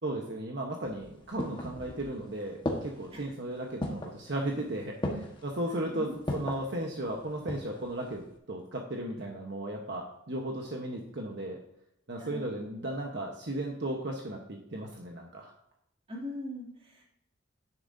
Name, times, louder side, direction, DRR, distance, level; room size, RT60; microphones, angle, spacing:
voice 1, 0.0-11.6 12.1-15.5, right 1 dB, 55° right, 0 dB, 1.2 m, -36 dB
sound 1, 0.8-2.2 2.7-3.2 3.8-4.2 5.0-5.5 6.3-6.7 7.2-7.8 8.1-8.2, left 1 dB, 25° left, 1.4 m, -34 dB
voice 2, 5.9-6.3 12.2-12.5 16.1-17.0, left 1 dB, 30° right, -3 dB, 2.8 m, -41 dB
10.5 x 9.8 x 2.8 m, 0.78 s
head